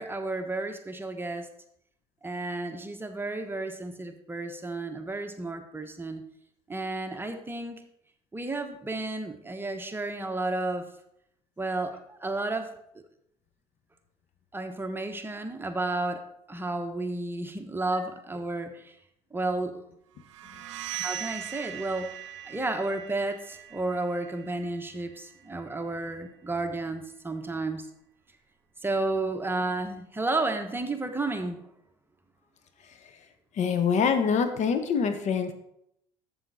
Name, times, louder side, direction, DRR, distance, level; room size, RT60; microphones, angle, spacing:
voice 1, 0.0-1.5 2.2-6.2 6.7-7.8 8.3-10.9 11.6-12.7 14.5-16.2 16.5-18.9 19.3-19.8 21.0-22.1 22.5-27.8 28.8-31.6, right 2 dB, 15° right, 6 dB, 1.1 m, -32 dB
sound 1, 20.3-26.0, right 11 dB, 85° right, 0.7 m, -41 dB
voice 2, 33.6-35.5, left 6 dB, 50° left, 9 dB, 1.0 m, -25 dB
7.5 x 7.2 x 4.1 m, 0.75 s
hypercardioid pair, 70°, 15 cm